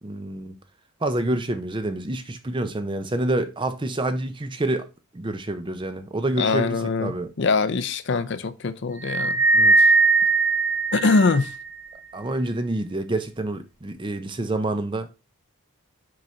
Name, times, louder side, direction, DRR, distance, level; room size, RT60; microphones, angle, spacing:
voice 1, 0.0-0.5 1.0-4.9 5.1-7.3 9.5-9.7 12.1-15.1, right 2 dB, 20° right, 0.6 m, -27 dB
voice 2, 6.4-9.4 9.8-9.9 10.9-11.5, left 4 dB, 55° left, 0.5 m, -23 dB
sound 1, 9.0-11.7, right 3 dB, 5° right, 1.7 m, -19 dB
6.3 x 3.9 x 4.3 m
head